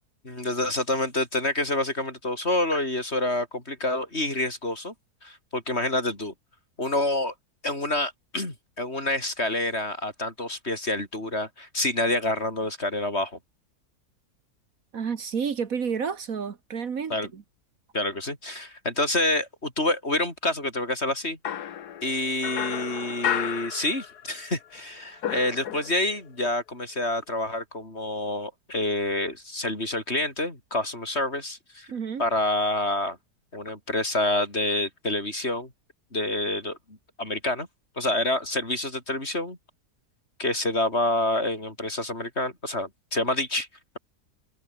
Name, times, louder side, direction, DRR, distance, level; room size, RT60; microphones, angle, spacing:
voice 1, 0.2-4.9 5.2-6.3 6.8-7.3 7.6-13.4 17.1-17.3 17.9-21.4 22.0-31.9 32.2-33.2 33.5-35.7 36.1-37.7 38.0-39.6 40.4-43.7, left 1 dB, 40° left, 5.9 m, -27 dB
voice 2, 14.9-17.4 31.9-32.2, right 6 dB, 60° right, 1.8 m, -30 dB
sound 1, 21.4-24.5 24.7-26.2, left 9 dB, 80° left, 1.6 m, -32 dB
omnidirectional pair, 1.7 m